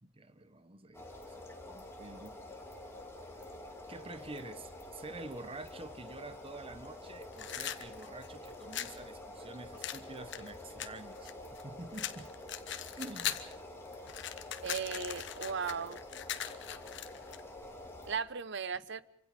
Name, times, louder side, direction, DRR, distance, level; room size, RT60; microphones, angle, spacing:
voice 1, 0.0-2.4 3.9-11.3 11.6-12.3 13.0-13.4, right 2 dB, 30° right, 12 dB, 1.0 m, -48 dB
sound 1, 0.9-18.2, left 1 dB, 15° left, 2.6 m, -48 dB
sound 2, 7.3-9.0 9.8-11.6 11.9-13.5 13.9-17.4, left 10 dB, 60° left, 1.3 m, -40 dB
voice 2, 14.6-16.0 18.1-19.0, right 6 dB, 60° right, 16 dB, 0.8 m, -36 dB
26.5 x 25.0 x 5.2 m, 0.69 s
head